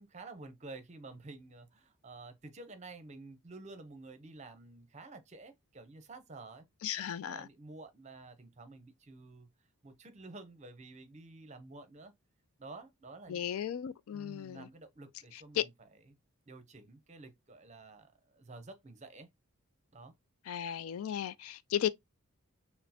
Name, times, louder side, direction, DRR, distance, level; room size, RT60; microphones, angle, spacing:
voice 1, 0.0-6.7 7.0-9.5 9.8-12.1 12.6-13.4 14.1-15.7 16.1-16.2 16.5-19.3 19.9-20.1, right 3 dB, 30° right, 0.6 m, -50 dB
voice 2, 6.8-7.5 13.3-14.7 15.3-15.6 20.5-21.9, left 10 dB, 70° left, 0.3 m, -35 dB
6.1 x 2.1 x 2.8 m
head